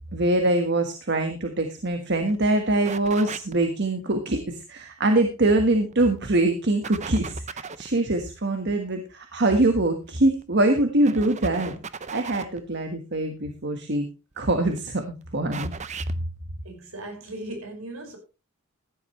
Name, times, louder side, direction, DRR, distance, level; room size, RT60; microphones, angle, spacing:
voice 1, 0.1-14.1 14.4-15.9, right 2 dB, 50° right, 1.5 m, -24 dB
sound 1, 1.9-2.0 2.2-2.4 2.8-3.7 5.8-6.4 6.8-7.9 10.1-10.4 11.0-12.6 14.3-14.8 15.5-16.1, right 5 dB, 35° right, 0.7 m, -37 dB
voice 2, 16.6-18.2, right 1 dB, 70° right, 5.6 m, -37 dB
15.0 x 11.0 x 3.2 m
head